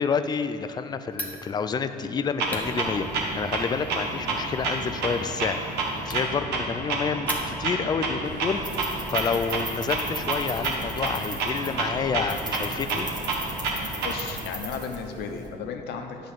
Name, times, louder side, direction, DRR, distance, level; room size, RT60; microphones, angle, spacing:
voice 1, 0.0-3.1 3.4-8.6 9.1-13.1, left 5 dB, 25° left, 9 dB, 0.4 m, -29 dB
Fire, 1.1-7.9, left 1 dB, 10° left, 1.0 m, -41 dB
Clock, 2.4-14.4, right 3 dB, 75° right, 1.4 m, -30 dB
sound 1, 8.2-15.5, right 1 dB, 25° right, 1.5 m, -39 dB
voice 2, 14.0-16.2, left 6 dB, 75° left, 5 dB, 0.9 m, -34 dB
9.8 x 3.9 x 7.3 m, 2.7 s
cardioid pair, 110°, 17 cm